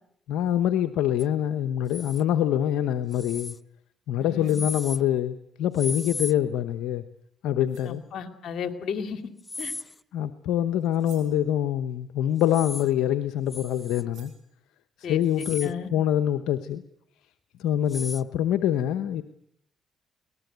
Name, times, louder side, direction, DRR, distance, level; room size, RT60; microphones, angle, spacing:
voice 1, 0.3-3.5 4.1-7.0 7.4-8.0 10.1-14.3 15.0-16.8 17.6-19.2, left 11 dB, 80° left, 11 dB, 0.9 m, -25 dB
sound 1, 1.2-1.3 1.9-2.2 3.1-3.6 4.5-5.0 5.7-6.3 9.4-10.0 12.4-12.9 13.5-14.0 15.2-15.7 17.9-18.2, left 3 dB, 25° left, 0.8 m, -36 dB
voice 2, 4.2-4.6 7.9-9.2 9.6-9.7 15.0-15.9, left 6 dB, 65° left, 7 dB, 2.5 m, -34 dB
sound 2, 4.2-4.7 5.9-6.2 7.2-7.3 7.7-8.0 9.1-9.2 9.5-9.9 10.8-11.4 12.7-13.0 13.7-13.8 14.1-14.5, right 9 dB, 75° right, 5.8 m, -55 dB
24.0 x 19.0 x 8.1 m, 0.73 s
supercardioid pair, 65°, 0 cm